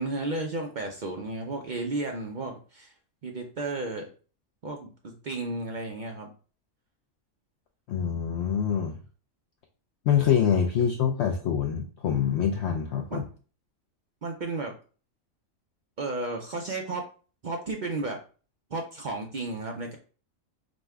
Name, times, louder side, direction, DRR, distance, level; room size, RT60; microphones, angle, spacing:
voice 1, 0.0-2.9 3.2-4.1 4.6-6.3 13.1-13.2 14.2-14.7 16.0-17.0 17.4-18.2 18.7-20.0, right 2 dB, 55° right, 2 dB, 0.5 m, -33 dB
voice 2, 7.9-9.0 10.1-13.2, left 8 dB, 65° left, 2 dB, 0.8 m, -25 dB
5.0 x 2.2 x 3.5 m, 0.38 s
omnidirectional pair, 1.4 m